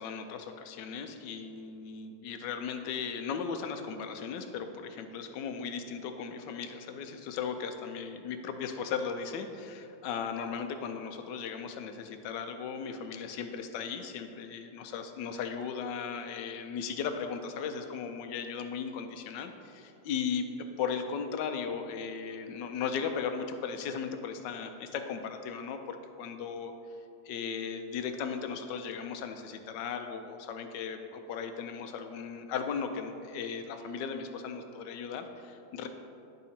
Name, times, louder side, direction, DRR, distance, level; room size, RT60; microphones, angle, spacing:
voice 1, 0.0-26.7 27.2-35.9, left 6 dB, 85° left, 6 dB, 1.3 m, -37 dB
10.5 x 3.7 x 4.2 m, 2.7 s
omnidirectional pair, 1.9 m